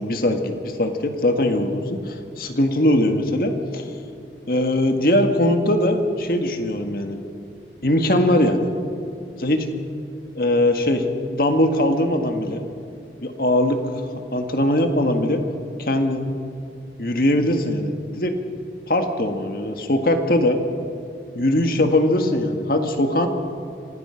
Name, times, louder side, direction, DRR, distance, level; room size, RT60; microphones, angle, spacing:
voice 1, 0.0-3.9 4.5-7.2 7.8-8.7 9.4-9.7 10.4-11.1 11.3-12.6 13.2-13.8 14.3-15.4 15.8-16.3 17.0-18.4 18.9-20.6 21.4-23.3, left 1 dB, 55° left, 6 dB, 1.7 m, -21 dB
25.5 x 17.5 x 5.8 m, 2.6 s
head